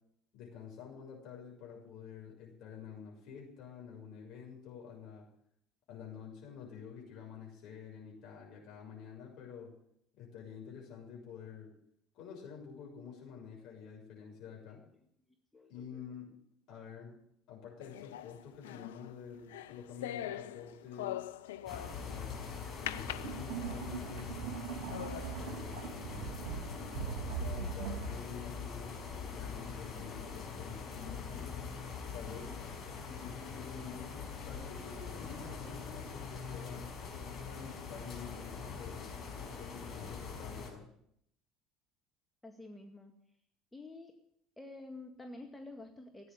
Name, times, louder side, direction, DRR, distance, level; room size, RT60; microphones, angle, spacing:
voice 1, 0.3-5.3 5.9-9.7 10.2-11.7 12.1-14.8 15.7-16.3 16.7-17.2 17.5-21.2 22.0-24.4 25.3-31.4 32.1-32.6 33.0-36.8 37.4-40.9, left 7 dB, 55° left, -1 dB, 6.8 m, -49 dB
voice 2, 15.5-16.0 32.2-32.6 42.4-43.1 43.7-44.2 44.6-46.3, left 2 dB, 10° left, 3 dB, 1.9 m, -49 dB
sound 1, 17.8-22.2 22.9-24.0 24.5-24.6 24.9-25.4, left 12 dB, 70° left, 0.6 m, -42 dB
sound 2, 21.6-21.7 23.0-28.1, right 10 dB, 60° right, 2.1 m, -41 dB
sound 3, 21.7-40.7, left 5 dB, 35° left, 5.5 m, -43 dB
16.0 x 9.3 x 9.2 m, 0.71 s
figure-of-eight pair, 65°, 0 cm